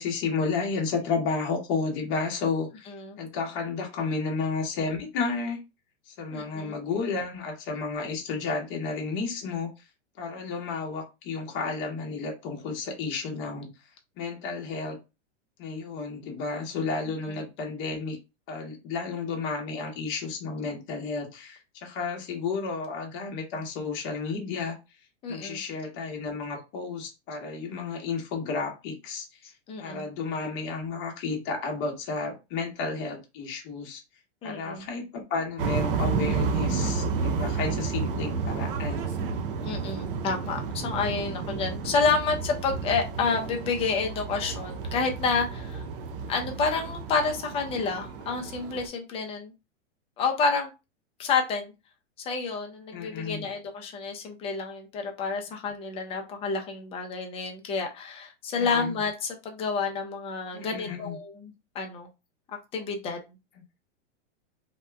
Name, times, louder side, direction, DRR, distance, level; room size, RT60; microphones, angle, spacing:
voice 1, 0.0-2.9 3.2-5.6 6.1-9.7 10.2-13.7 14.2-15.0 15.6-18.2 18.5-24.8 25.3-29.3 29.8-34.0 34.4-39.1 52.9-53.5 58.6-58.9 60.5-61.2, left 4 dB, 30° left, 1 dB, 0.9 m, -32 dB
voice 2, 6.3-6.7 17.3-17.4 25.2-25.6 29.7-30.0 34.4-34.9 39.6-45.8 46.3-49.5 50.2-50.7 51.2-51.7 52.2-62.1 62.7-63.2, left 4 dB, 15° left, 3 dB, 0.5 m, -29 dB
sound 1, 35.6-48.9, right 5 dB, 50° right, 0.6 m, -31 dB
2.9 x 2.2 x 3.3 m, 0.26 s
supercardioid pair, 145°, 36 cm